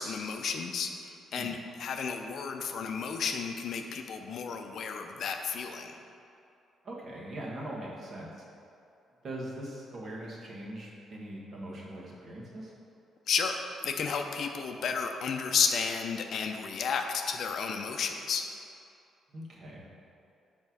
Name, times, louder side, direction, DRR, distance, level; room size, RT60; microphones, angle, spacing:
voice 1, 0.0-6.0 13.3-18.5, left 6 dB, 65° left, 5 dB, 0.5 m, -32 dB
voice 2, 6.8-8.4 9.2-12.7 19.3-19.8, right 1 dB, 50° right, -4 dB, 1.6 m, -41 dB
5.5 x 4.4 x 6.1 m, 2.6 s
cardioid pair, 90°, 0 cm